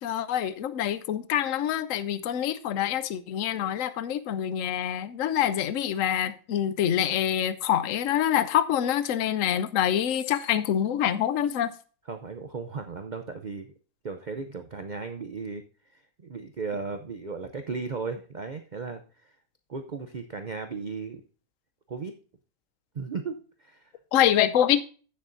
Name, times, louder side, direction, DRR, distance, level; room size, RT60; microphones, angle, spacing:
voice 1, 0.0-11.7 24.1-24.8, left 10 dB, 60° left, 0.9 m, -26 dB
voice 2, 12.1-13.7 14.0-15.6 15.9-19.3 19.7-21.2 21.9-22.1 22.9-23.9, right 4 dB, 90° right, 0.4 m, -36 dB
16.0 x 6.7 x 2.6 m
omnidirectional pair, 1.8 m